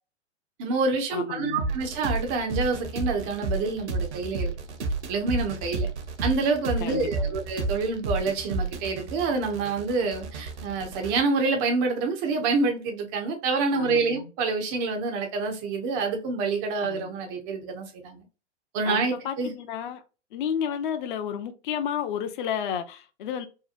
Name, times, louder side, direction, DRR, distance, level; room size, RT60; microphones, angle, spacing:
voice 1, 0.6-4.5 5.1-5.9 6.2-18.2 18.7-19.5, right 4 dB, 15° right, 0.3 m, -27 dB
voice 2, 1.1-1.7 6.8-7.4 13.7-14.3 16.8-17.1 18.8-20.0 20.3-23.5, left 8 dB, 45° left, 0.5 m, -32 dB
sound 1, 1.6-11.2, right 3 dB, 70° right, 0.7 m, -32 dB
2.8 x 2.1 x 2.4 m
figure-of-eight pair, 105°, 36 cm